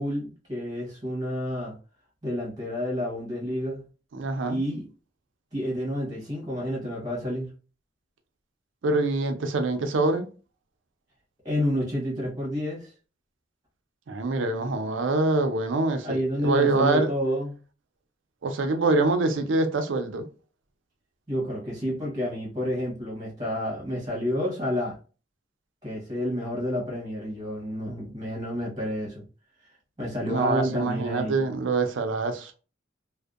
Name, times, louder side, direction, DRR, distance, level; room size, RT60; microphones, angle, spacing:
voice 1, 0.0-1.7 2.2-3.8 4.5-4.9 5.5-7.5 11.4-12.9 16.0-17.6 21.3-25.0 25.8-29.2 30.0-31.4, equal, 20° right, 1.0 m, -29 dB
voice 2, 4.1-4.6 8.8-10.3 14.1-17.1 18.4-20.2 30.2-32.5, right 3 dB, 90° right, 0.5 m, -25 dB
2.6 x 2.1 x 2.3 m
head